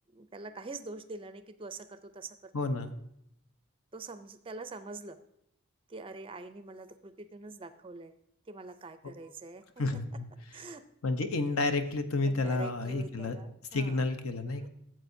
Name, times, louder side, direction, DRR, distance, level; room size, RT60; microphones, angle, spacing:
voice 1, 0.1-2.7 3.9-5.2 5.9-8.1 8.5-9.6 9.9-10.0 10.5-10.8 12.2-14.0 14.6-14.7, right 3 dB, 25° right, 11 dB, 0.4 m, -45 dB
voice 2, 2.5-2.9 9.8-10.3 11.0-13.4 13.7-14.7, left 2 dB, 75° left, 8 dB, 0.8 m, -30 dB
13.5 x 7.6 x 2.7 m, 0.76 s
head